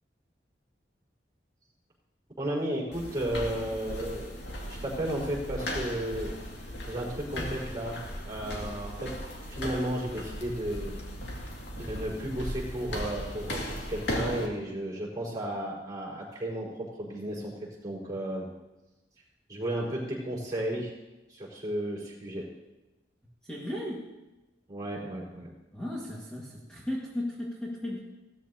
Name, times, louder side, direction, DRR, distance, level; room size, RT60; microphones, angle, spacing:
voice 1, 2.4-4.4 4.6-6.3 6.9-8.0 8.2-9.1 9.5-10.9 11.7-16.7 17.0-17.5 17.8-18.4 19.5-20.9 21.3-22.4 24.7-25.5, right 1 dB, 20° right, -4 dB, 4.8 m, -33 dB
sound 1, 2.9-14.5, left 1 dB, 80° left, 2.3 m, -37 dB
voice 2, 23.5-24.1 25.7-28.0, left 1 dB, 5° left, -6 dB, 1.7 m, -35 dB
17.0 x 13.5 x 2.8 m, 1.0 s
head